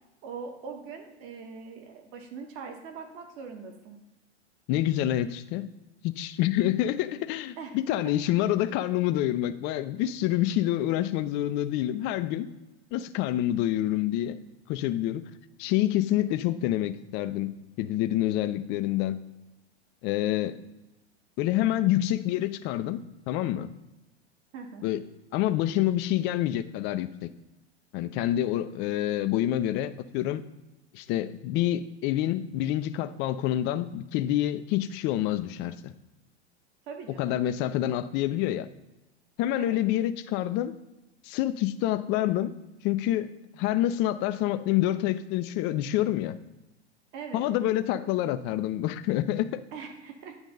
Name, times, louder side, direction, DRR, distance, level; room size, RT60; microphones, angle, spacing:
voice 1, 0.2-4.0 7.6-8.1 24.5-24.9 36.9-37.5 39.6-39.8 47.1-47.5 49.7-50.5, right 5 dB, 40° right, 4 dB, 1.5 m, -41 dB
voice 2, 4.7-5.7 6.0-12.5 12.9-14.4 14.7-15.2 15.6-19.2 20.0-20.6 21.4-23.0 23.3-23.7 24.8-25.0 25.3-27.3 27.9-30.4 30.9-35.8 37.2-38.7 39.4-40.7 41.2-42.5 42.8-46.4 47.3-49.6, left 13 dB, 35° left, 12 dB, 0.5 m, -27 dB
9.4 x 3.5 x 5.3 m, 1.0 s
hypercardioid pair, 95°, 34 cm